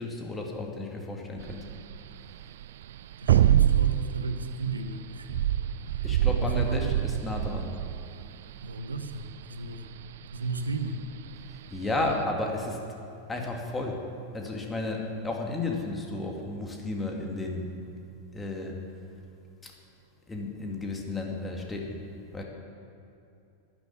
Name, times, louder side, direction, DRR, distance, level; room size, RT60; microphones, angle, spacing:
voice 1, 0.0-1.7 6.0-7.7 11.7-12.8 13.3-14.0 14.3-17.7 18.3-18.8 19.6-19.7 20.3-22.0 22.3-22.4, left 2 dB, 15° left, 0 dB, 2.4 m, -33 dB
sound 1, 1.4-12.2, right 11 dB, 55° right, 0.3 m, -27 dB
voice 2, 3.2-6.1 6.3-6.9 8.6-9.9 10.3-11.0, right 3 dB, 75° right, 8 dB, 1.1 m, -34 dB
13.0 x 10.5 x 8.5 m, 2.7 s
figure-of-eight pair, 90°, 0 cm